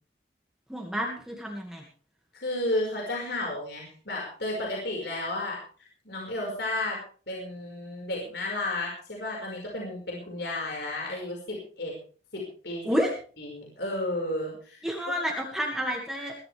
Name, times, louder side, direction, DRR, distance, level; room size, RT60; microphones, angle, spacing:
voice 1, 0.7-1.8 12.8-13.1 14.8-16.4, equal, 5° right, -1 dB, 2.1 m, -29 dB
voice 2, 2.3-5.6 6.1-7.0 7.3-11.9 12.3-12.8 13.4-14.8, left 1 dB, 65° left, -1 dB, 5.4 m, -32 dB
21.5 x 13.0 x 3.5 m, 0.41 s
head